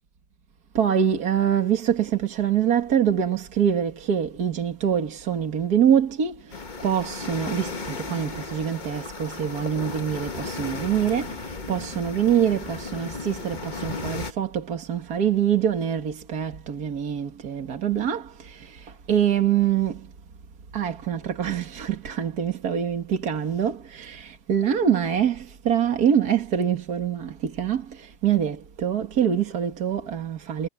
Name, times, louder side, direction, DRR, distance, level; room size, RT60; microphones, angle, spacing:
voice 1, 0.7-6.4 6.8-11.4 11.7-18.7 19.1-20.0 20.7-30.7, right 9 dB, 65° right, 2.3 m, -24 dB
sound 1, 6.5-14.3, left 4 dB, 30° left, 1.3 m, -35 dB
omnidirectional pair, 1.7 m